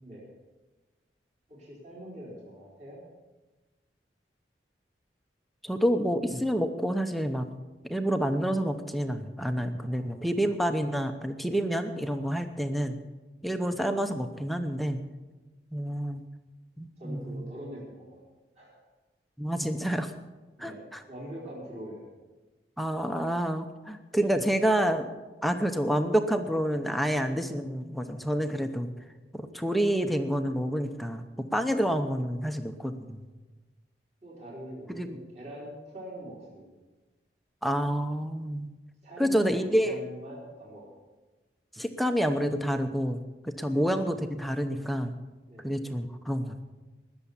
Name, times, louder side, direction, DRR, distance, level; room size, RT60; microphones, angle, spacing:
voice 1, 1.5-3.0 9.8-10.2 17.0-18.2 18.6-18.8 20.6-20.8 21.1-22.1 34.2-36.7 39.0-40.9 43.6-43.9 45.5-45.7, right 1 dB, 40° right, -4 dB, 4.1 m, -43 dB
voice 2, 5.6-7.5 7.8-13.0 13.4-15.0 15.7-16.2 16.8-17.4 19.4-20.1 20.6-20.7 22.8-25.1 25.4-28.9 29.3-31.3 31.5-33.3 35.0-35.2 37.6-38.7 39.2-40.0 41.7-45.1 45.6-46.6, equal, ahead, 6 dB, 0.7 m, -28 dB
20.0 x 7.0 x 7.2 m, 1.2 s
head